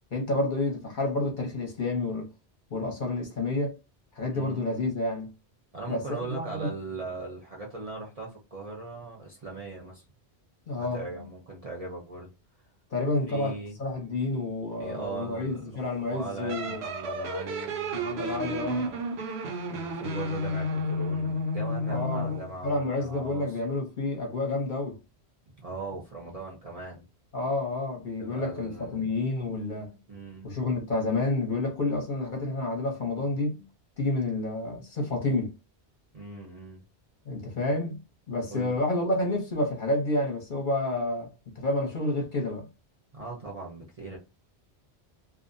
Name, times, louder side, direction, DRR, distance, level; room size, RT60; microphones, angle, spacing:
voice 1, 0.1-2.3 2.7-3.7 4.2-5.3 5.9-6.7 10.7-11.2 12.9-16.8 17.9-18.9 21.9-22.4 22.6-24.9 27.3-30.0 30.4-33.6 34.0-35.5 37.3-38.0 38.3-41.3 41.6-42.7, left 2 dB, 50° left, 0.8 m, -29 dB
voice 2, 4.3-4.6 5.7-10.0 10.8-12.3 13.3-13.8 14.8-15.6 16.0-19.0 19.7-23.6 25.5-27.0 28.2-29.1 30.1-30.5 36.1-36.8 38.5-38.8 43.1-44.2, right 3 dB, 40° right, 0.6 m, -39 dB
sound 1, 16.5-22.5, left 1 dB, 75° right, 0.8 m, -31 dB
2.5 x 2.0 x 2.5 m
omnidirectional pair, 1.1 m